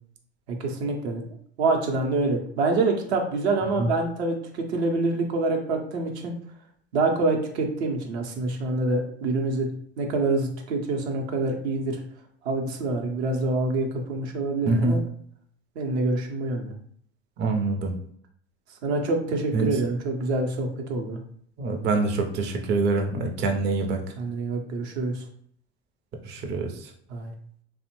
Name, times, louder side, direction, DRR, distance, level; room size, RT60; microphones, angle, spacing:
voice 1, 0.5-1.2 1.6-6.3 6.9-9.7 10.0-12.0 12.4-15.0 15.8-16.7 18.8-21.2 24.2-25.2 27.1-27.3, right 3 dB, 75° right, 3 dB, 0.7 m, -26 dB
voice 2, 14.7-15.0 17.4-17.9 19.5-19.7 21.6-24.0 26.3-26.7, right 3 dB, 30° right, 3 dB, 0.4 m, -25 dB
2.5 x 2.0 x 2.9 m, 0.62 s
hypercardioid pair, 85°, 34 cm